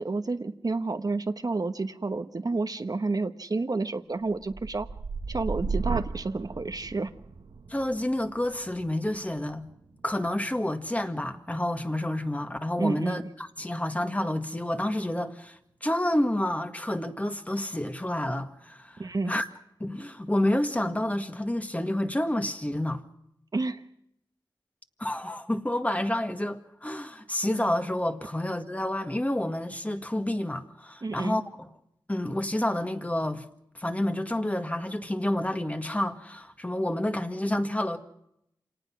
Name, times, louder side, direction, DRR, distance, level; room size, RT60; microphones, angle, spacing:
voice 1, 0.0-4.9 5.3-7.1 12.8-13.2 19.0-19.3 23.5-23.8 31.0-31.4, right 3 dB, 50° right, 1.1 m, -30 dB
sound 1, 4.2-12.3 12.7-13.2, right 4 dB, 85° right, 1.7 m, -37 dB
voice 2, 7.7-9.7 10.0-19.4 19.8-23.0 25.0-31.4 32.1-33.5 33.7-38.0, left 1 dB, 15° left, 1.8 m, -29 dB
27.5 x 19.0 x 6.1 m
wide cardioid pair, 75°, 9 cm